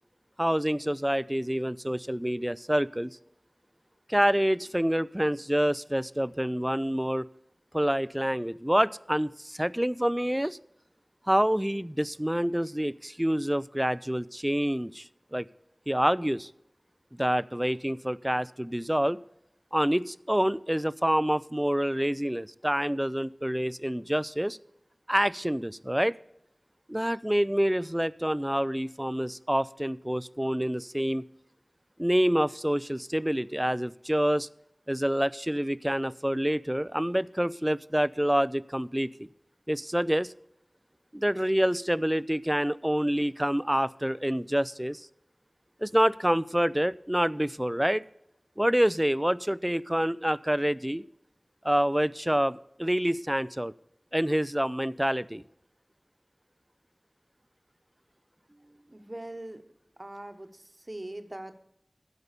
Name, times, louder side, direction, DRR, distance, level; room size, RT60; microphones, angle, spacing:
voice 1, 0.4-3.2 4.1-7.3 7.7-10.6 11.3-15.5 15.9-16.5 17.1-19.2 19.7-24.6 25.1-26.1 26.9-31.2 32.0-34.5 34.9-39.3 39.7-40.3 41.1-45.1 45.8-48.0 48.6-51.0 51.6-53.7 54.1-55.4, equal, 10° right, 19 dB, 0.3 m, -27 dB
voice 2, 58.5-59.6 60.0-61.6, right 1 dB, 35° right, 8 dB, 1.0 m, -42 dB
12.5 x 5.5 x 6.6 m, 0.79 s
wide cardioid pair, 50°, 0 cm